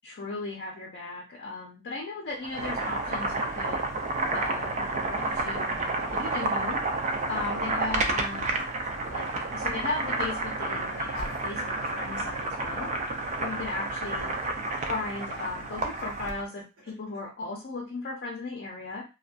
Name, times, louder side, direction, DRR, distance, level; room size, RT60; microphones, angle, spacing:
voice 1, 0.0-3.8 4.3-6.8 7.3-8.6 9.1-9.3 9.5-12.9 13.4-14.3 14.9-19.0, left 3 dB, 50° left, -3 dB, 0.6 m, -36 dB
Boiling, 2.4-16.4, right 2 dB, 35° right, 0.4 m, -30 dB
Laughter, 5.4-5.9 8.1-9.1 9.5-9.7 11.1-12.3 13.8-14.9 15.9-17.2, equal, 65° right, 1.2 m, -48 dB
2.5 x 2.2 x 2.2 m, 0.29 s
head